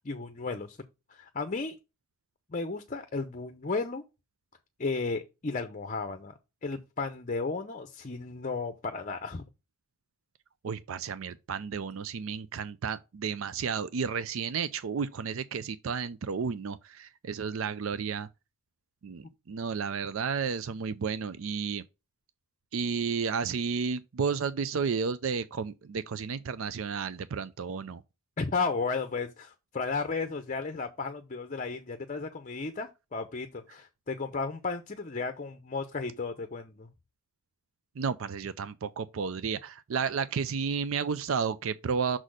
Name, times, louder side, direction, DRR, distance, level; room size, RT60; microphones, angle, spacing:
voice 1, 0.0-0.8 1.1-1.8 2.5-4.0 4.8-6.3 6.6-9.4 28.4-36.9, left 4 dB, 35° left, 0.7 m, -34 dB
voice 2, 10.6-18.3 19.0-21.8 22.7-28.0 38.0-42.2, right 6 dB, 65° right, 0.4 m, -32 dB
6.1 x 4.1 x 6.2 m
head